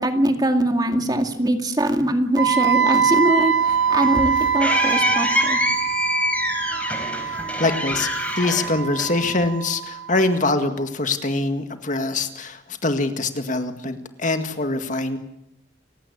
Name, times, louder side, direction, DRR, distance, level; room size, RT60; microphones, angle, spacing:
voice 1, 0.0-5.6, right 1 dB, 20° right, 5 dB, 2.3 m, -22 dB
Wind instrument woodwind instrument, 2.4-10.3, right 6 dB, 75° right, 1.9 m, -23 dB
sound 1, 3.6-9.4, left 1 dB, 5° left, 4.4 m, -25 dB
voice 2, 7.2-8.1 8.4-15.2, left 2 dB, 40° left, 7 dB, 1.9 m, -24 dB
29.5 x 16.5 x 8.5 m, 0.85 s
head